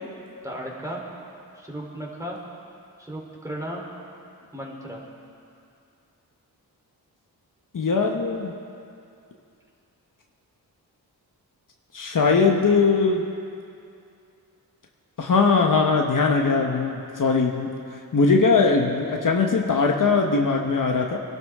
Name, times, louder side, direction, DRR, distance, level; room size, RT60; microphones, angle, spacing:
voice 1, 0.4-1.0 1.6-2.4 3.0-3.8 4.5-5.0, right 1 dB, 10° right, -3 dB, 3.5 m, -35 dB
voice 2, 7.7-8.5 11.9-13.2 15.2-17.7 18.1-21.2, left 4 dB, 55° left, 1 dB, 1.3 m, -20 dB
24.0 x 12.5 x 3.7 m, 2.5 s
cardioid pair, 80°, 38 cm